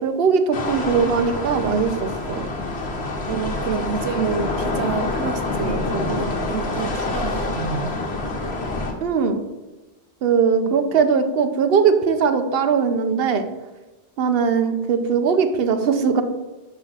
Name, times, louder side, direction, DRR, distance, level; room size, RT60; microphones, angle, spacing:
voice 1, 0.0-2.5 9.0-9.4 10.2-13.4 14.2-16.2, right 6 dB, 65° right, 8 dB, 1.0 m, -20 dB
sound 1, 0.5-8.9, left 2 dB, 75° left, 1.4 m, -26 dB
voice 2, 3.3-8.0 10.6-11.0, right 6 dB, 90° right, 9 dB, 0.9 m, -28 dB
10.0 x 3.6 x 6.1 m, 1.1 s
omnidirectional pair, 1.1 m